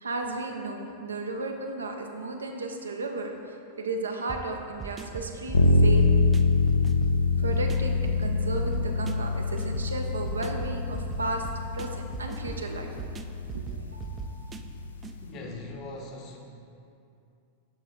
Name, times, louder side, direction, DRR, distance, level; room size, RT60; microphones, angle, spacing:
voice 1, 0.0-6.0 7.4-11.5 11.7-12.9 13.5-14.3, right 3 dB, 75° right, 3 dB, 0.5 m, -34 dB
sound 1, 4.3-15.2, right 6 dB, 20° right, 0.3 m, -40 dB
sound 2, 5.5-15.3, left 3 dB, 70° left, 0.4 m, -26 dB
voice 2, 15.2-16.4, left 2 dB, 35° left, 2 dB, 0.8 m, -40 dB
5.7 x 4.6 x 4.4 m, 2.5 s
figure-of-eight pair, 90°, 0 cm